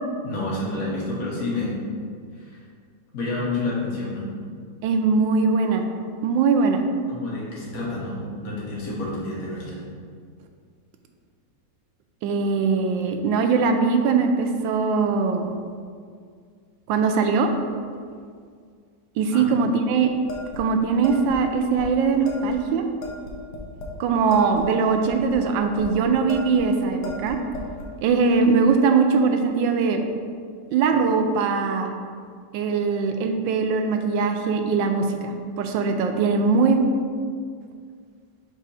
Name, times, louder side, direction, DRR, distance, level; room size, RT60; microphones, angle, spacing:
voice 1, 0.2-1.7 2.4-2.6 3.1-4.3 7.1-9.8 19.3-19.5, left 2 dB, 50° left, -5 dB, 1.6 m, -29 dB
voice 2, 4.8-5.8 6.2-6.8 12.2-15.5 16.9-17.5 19.2-20.1 20.6-22.8 24.0-27.4 28.0-30.0 30.7-31.9 32.5-36.8, right 5 dB, 90° right, 5 dB, 1.3 m, -21 dB
sound 1, 20.3-21.4 21.8-21.9 22.2-22.6 23.0-24.0 24.3-25.9 26.3-26.7 27.0-27.9, left 2 dB, 70° left, 1.4 m, -36 dB
4.8 x 4.1 x 5.4 m, 2.1 s
omnidirectional pair, 2.0 m